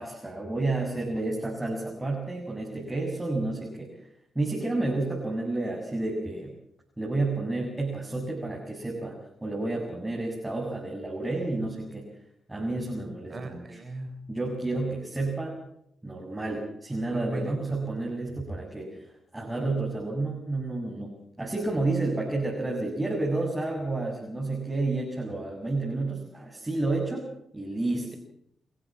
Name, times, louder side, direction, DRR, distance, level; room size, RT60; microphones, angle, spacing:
voice 1, 0.0-3.9 4.4-6.5 7.0-12.0 12.5-13.8 14.3-15.6 16.0-27.3 27.5-28.1, right 2 dB, 15° right, -1 dB, 7.2 m, -30 dB
voice 2, 13.3-14.2 17.1-17.8, right 2 dB, 40° right, 8 dB, 5.4 m, -36 dB
29.5 x 14.0 x 7.6 m, 0.73 s
hypercardioid pair, 40°, 0 cm